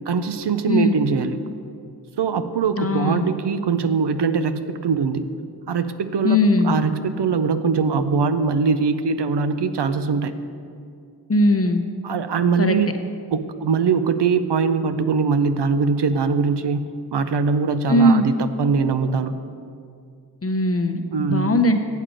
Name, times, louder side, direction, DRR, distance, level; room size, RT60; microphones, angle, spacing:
voice 1, 0.1-1.4 2.2-5.2 5.7-6.4 6.6-10.3 12.0-12.9 13.3-19.3 21.1-21.5, right 5 dB, 75° right, 11 dB, 0.5 m, -22 dB
voice 2, 0.7-1.0 2.8-3.3 6.2-6.7 11.3-11.8 12.6-12.8 17.9-18.2 20.4-21.8, left 1 dB, 35° left, 7 dB, 0.7 m, -19 dB
8.2 x 7.4 x 5.0 m, 2.3 s
wide cardioid pair, 55°, 42 cm